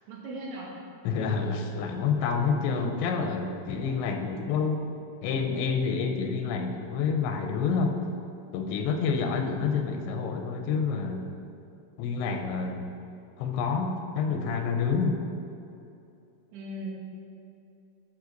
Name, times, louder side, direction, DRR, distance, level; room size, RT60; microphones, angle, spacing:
voice 1, 0.1-0.7 16.5-16.9, right 1 dB, 70° right, -3 dB, 3.4 m, -37 dB
voice 2, 1.0-4.8 5.2-8.0 8.5-11.3 12.0-12.9 13.4-15.2, left 5 dB, 85° left, 5 dB, 3.0 m, -28 dB
11.5 x 6.4 x 3.9 m, 2.6 s
omnidirectional pair, 5.2 m